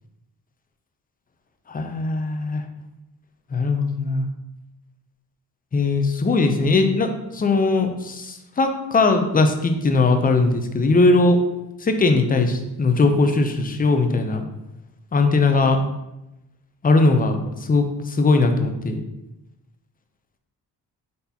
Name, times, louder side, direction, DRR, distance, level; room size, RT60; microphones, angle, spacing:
voice 1, 1.7-2.6 3.5-4.3 5.7-11.4 11.8-14.5 15.1-15.8 16.8-17.4 17.7-19.0, left 3 dB, 20° left, 6 dB, 0.5 m, -19 dB
4.0 x 3.4 x 2.8 m, 0.92 s
cardioid pair, 80°, 40 cm